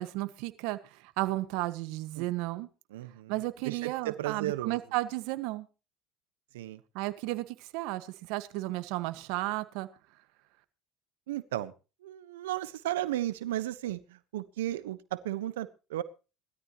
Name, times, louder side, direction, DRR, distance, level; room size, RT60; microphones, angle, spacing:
voice 1, 0.0-2.7 3.3-5.7 6.9-9.9, right 18 dB, 70° right, 11 dB, 1.6 m, -33 dB
voice 2, 2.9-3.3 3.6-4.8 6.5-6.8 11.3-11.7 12.0-16.0, right 14 dB, 90° right, 13 dB, 1.2 m, -34 dB
19.5 x 13.5 x 3.1 m, 0.32 s
supercardioid pair, 90°, 0 cm